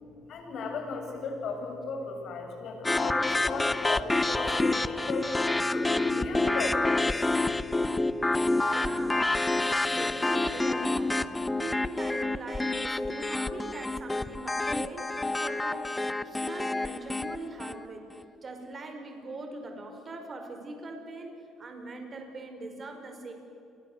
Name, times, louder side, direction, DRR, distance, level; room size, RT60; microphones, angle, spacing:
voice 1, 0.2-5.3 5.7-7.0 11.5-11.6, left 4 dB, 60° left, 3 dB, 7.4 m, -36 dB
sound 1, 2.8-17.8, left 2 dB, 15° left, 1.0 m, -28 dB
voice 2, 8.7-15.9 16.2-18.1 18.4-21.3 21.6-23.3, right 2 dB, 35° right, 5 dB, 5.3 m, -41 dB
29.0 x 23.0 x 8.1 m, 2.7 s
cardioid pair, 105°, 0 cm